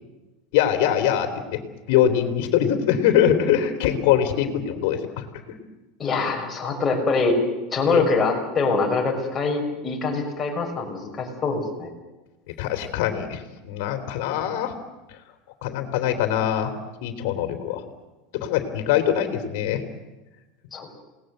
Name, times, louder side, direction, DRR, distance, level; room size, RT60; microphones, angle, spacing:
voice 1, 0.5-1.6 1.9-5.2 7.9-8.0 12.5-14.7 15.6-16.7 17.0-17.8 18.3-19.8, left 10 dB, 65° left, 6 dB, 3.4 m, -23 dB
voice 2, 6.0-7.4 7.7-11.9 20.7-21.0, left 3 dB, 15° left, 0 dB, 6.0 m, -24 dB
28.5 x 19.0 x 8.0 m, 1.1 s
supercardioid pair, 150°, 0 cm